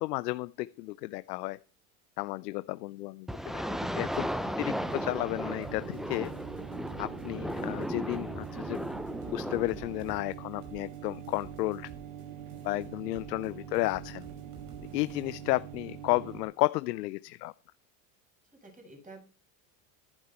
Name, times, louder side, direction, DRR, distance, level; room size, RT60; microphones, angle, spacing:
voice 1, 0.0-1.6 2.2-4.3 4.6-6.3 7.0-8.8 9.3-11.9 12.6-14.2 14.9-17.5, left 20 dB, 90° left, 16 dB, 0.6 m, -32 dB
sound 1, 3.3-10.2, equal, ahead, 0.6 m, -36 dB
voice 2, 4.0-4.9 18.5-19.2, right 2 dB, 15° right, 1 dB, 7.0 m, -51 dB
sound 2, 4.7-16.4, right 10 dB, 85° right, 2.4 m, -44 dB
sound 3, 5.6-7.2 7.5-8.5 8.7-12.2 12.5-13.5 13.7-15.6, right 5 dB, 60° right, 6.1 m, -53 dB
12.0 x 11.0 x 4.4 m, 0.35 s
supercardioid pair, 95°, 47 cm